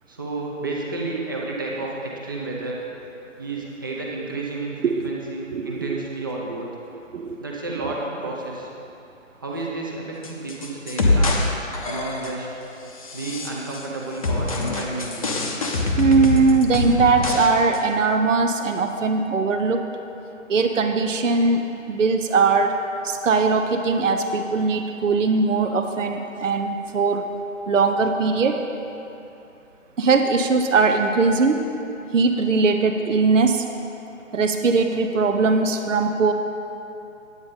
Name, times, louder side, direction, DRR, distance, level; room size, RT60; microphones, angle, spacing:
voice 1, 0.1-2.8 3.4-4.8 5.0-6.7 7.4-8.7 9.4-11.3 11.8-12.5 13.1-15.4, right 3 dB, 15° right, -3 dB, 0.6 m, -31 dB
voice 2, 4.8-5.2 5.5-6.0 6.5-6.6 7.1-7.4 16.0-19.8 20.5-22.7 23.0-27.2 27.7-28.6 30.0-31.6 32.1-33.6 34.3-36.3, right 4 dB, 65° right, 5 dB, 0.7 m, -20 dB
sound 1, 10.2-11.5 11.7-12.4 13.0-13.9 14.2-17.5 17.7-17.8, left 2 dB, 25° left, 0.7 m, -24 dB
9.5 x 8.9 x 3.9 m, 2.8 s
figure-of-eight pair, 145°, 40 cm